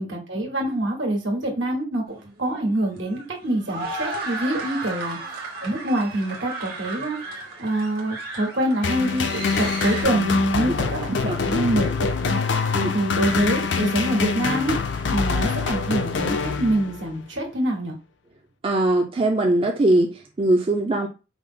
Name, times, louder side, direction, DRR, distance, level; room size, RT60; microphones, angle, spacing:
voice 1, 0.0-5.2 5.6-14.8 15.1-18.0, right 1 dB, 75° right, 0 dB, 1.4 m, -25 dB
sound 1, 2.1-10.0, right 3 dB, 55° right, 1.2 m, -34 dB
sound 2, 8.8-17.2, left 5 dB, 70° left, 0.5 m, -25 dB
voice 2, 18.6-21.1, right 1 dB, 30° right, 2 dB, 0.4 m, -21 dB
4.9 x 2.0 x 3.6 m, 0.30 s
head